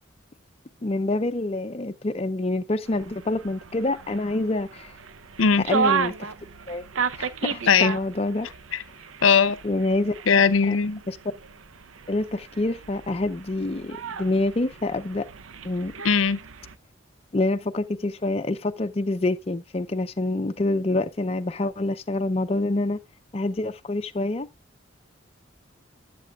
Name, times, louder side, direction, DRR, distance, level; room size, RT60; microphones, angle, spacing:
voice 1, 0.8-4.9 5.7-6.1 6.7-6.8 7.1-8.5 9.6-10.2 10.7-10.8 11.1-11.2 12.1-15.3 15.6-15.9 17.3-23.0 23.3-24.5, left 2 dB, 30° left, 0.5 m, -26 dB
sound 1, 2.9-16.8, right 6 dB, 85° right, 0.7 m, -33 dB
voice 2, 9.2-9.6 10.3-11.0 16.0-16.4, left 6 dB, 85° left, 0.7 m, -19 dB
13.0 x 8.3 x 2.3 m
head